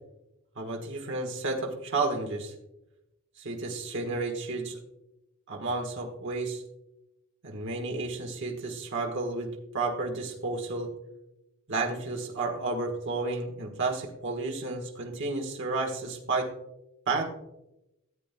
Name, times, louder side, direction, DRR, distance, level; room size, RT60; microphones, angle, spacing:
voice 1, 0.5-2.5 3.4-4.8 5.5-6.6 7.4-10.9 11.7-16.5 17.1-17.2, right 3 dB, 60° right, 1 dB, 1.5 m, -31 dB
14.5 x 8.6 x 2.2 m, 0.89 s
head